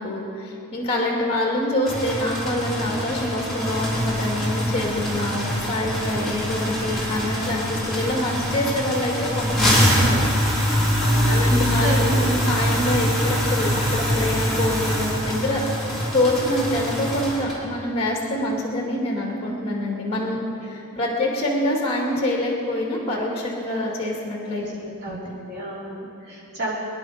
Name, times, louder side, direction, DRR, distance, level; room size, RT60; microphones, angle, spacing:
voice 1, 0.0-10.2 11.3-20.4 20.6-24.6 25.1-25.2, left 1 dB, 25° left, -2 dB, 2.3 m, -25 dB
sound 1, 1.9-17.6, equal, ahead, 4.0 m, -24 dB
voice 2, 11.0-12.2 20.6-20.7 24.5-26.7, right 1 dB, 45° right, -5 dB, 4.0 m, -32 dB
24.5 x 10.5 x 5.0 m, 2.8 s
head